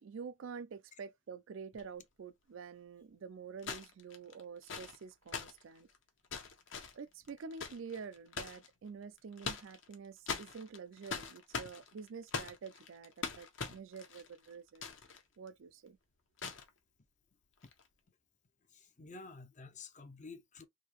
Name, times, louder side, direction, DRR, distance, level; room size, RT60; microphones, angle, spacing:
voice 1, 0.0-5.9 6.9-14.9 15.4-16.0, right 5 dB, 60° right, 0.4 m, -48 dB
sound 1, 1.7-1.8 3.6-8.7 9.2-9.9 10.3-15.2 15.5-15.6 16.4-16.7 17.6-17.8, left 5 dB, 55° left, 0.9 m, -42 dB
voice 2, 18.7-20.6, left 4 dB, 35° left, 0.6 m, -51 dB
3.7 x 2.7 x 3.0 m
head